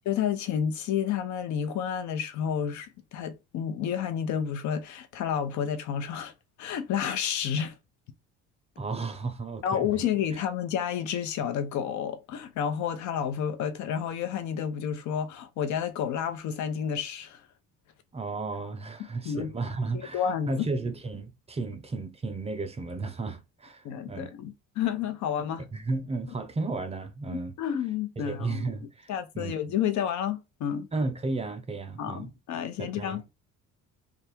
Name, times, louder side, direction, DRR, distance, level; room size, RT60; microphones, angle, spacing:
voice 1, 0.0-6.3 6.6-7.7 9.6-17.4 19.2-19.5 20.1-20.7 23.8-25.7 27.3-28.7 29.1-30.9 32.0-33.2, left 8 dB, 65° left, 0.8 m, -30 dB
voice 2, 8.8-9.9 18.1-24.3 25.7-27.5 28.2-29.1 29.3-29.5 30.9-32.3 32.8-33.2, right 3 dB, 20° right, 0.5 m, -33 dB
3.5 x 2.4 x 4.4 m
cardioid pair, 125°, 31 cm